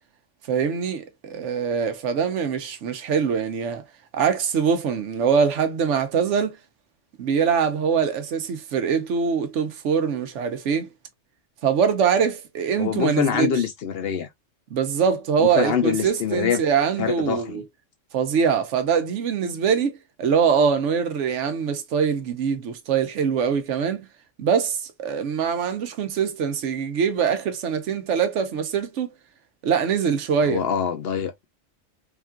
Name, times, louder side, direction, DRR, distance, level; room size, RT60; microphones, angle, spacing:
voice 1, 0.5-3.8 4.1-6.6 7.2-10.9 11.6-13.6 14.7-17.6 18.1-24.1 24.4-29.1 29.6-30.6, right 6 dB, 75° right, 1.0 m, -23 dB
voice 2, 12.8-14.3 15.4-16.6 17.0-17.6 30.4-31.5, left 8 dB, 65° left, 0.7 m, -25 dB
3.6 x 2.5 x 2.2 m
omnidirectional pair, 1.3 m